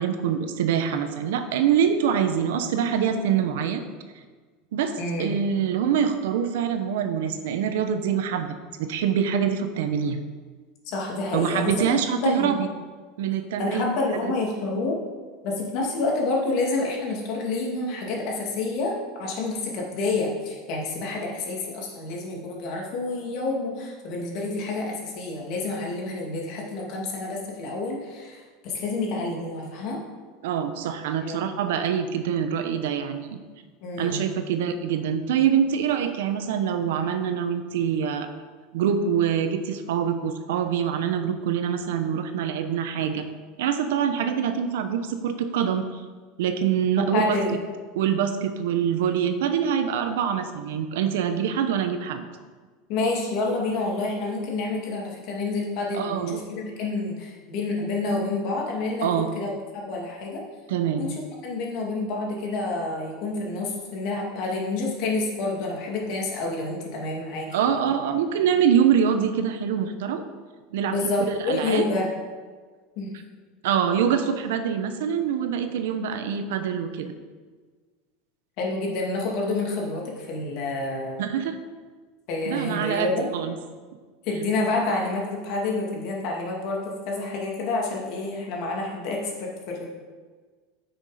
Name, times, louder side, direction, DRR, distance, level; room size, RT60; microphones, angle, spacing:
voice 1, 0.0-3.8 4.7-10.2 11.3-12.6 13.2-13.9 30.4-33.4 34.0-38.3 38.7-43.3 43.6-46.0 46.4-47.4 47.9-52.2 56.0-56.4 59.0-59.3 60.7-61.1 67.5-70.2 70.7-71.0 71.5-71.8 73.6-77.1 81.2-81.6 82.5-83.5, right 8 dB, 80° right, 8 dB, 0.9 m, -25 dB
voice 2, 5.0-5.4 10.9-12.6 13.6-15.0 15.4-30.0 31.2-31.4 33.8-34.2 47.0-47.6 52.9-59.5 59.8-60.4 61.0-67.8 70.9-72.1 73.0-73.1 78.6-81.3 82.3-83.3 84.2-89.9, left 3 dB, 45° left, -1 dB, 2.3 m, -28 dB
9.1 x 6.3 x 5.0 m, 1.5 s
supercardioid pair, 160°, 0 cm